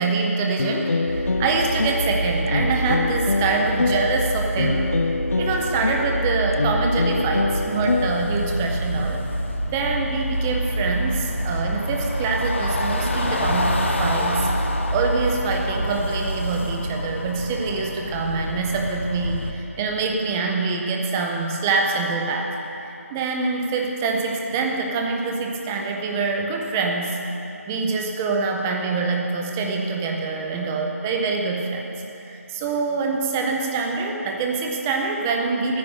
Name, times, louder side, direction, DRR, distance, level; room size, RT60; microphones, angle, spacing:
voice 1, 0.0-4.8 5.4-9.2 9.7-14.5 14.9-27.2 27.7-31.9 32.2-35.8, right 4 dB, 10° right, 1 dB, 0.5 m, -25 dB
sound 1, 0.6-8.7, left 3 dB, 65° left, 0.3 m, -26 dB
sound 2, 1.1-17.6, right 1 dB, 50° right, 1.5 m, -28 dB
sound 3, 7.9-19.5, left 2 dB, 50° left, 1.0 m, -30 dB
13.5 x 9.5 x 4.9 m, 2.8 s
figure-of-eight pair, 160°, 8 cm